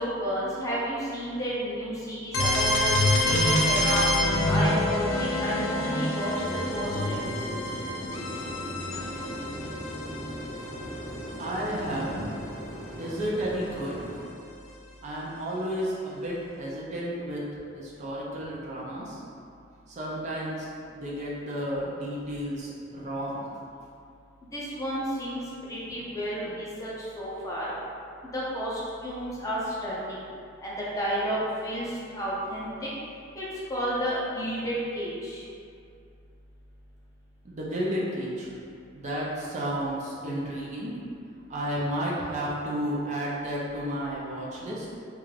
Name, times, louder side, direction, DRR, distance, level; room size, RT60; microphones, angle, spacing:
voice 1, 0.0-2.9 3.2-4.0 4.5-6.4 6.7-7.2 7.5-7.6 24.5-25.4 25.7-26.9 27.2-27.7 28.3-30.3 30.6-32.9 33.4-33.5 33.7-35.4, equal, 15° left, -7 dB, 0.5 m, -31 dB
sound 1, 2.3-12.1, left 1 dB, 75° left, 0.4 m, -27 dB
sound 2, 6.4-14.2, equal, 15° right, 0.8 m, -38 dB
voice 2, 11.4-12.3 13.0-14.0 15.0-17.4 17.7-19.2 19.9-20.7 20.9-23.5 37.4-38.5 38.9-40.9 41.5-44.9, equal, 35° right, -5 dB, 0.4 m, -32 dB
2.4 x 2.3 x 3.2 m, 2.4 s
head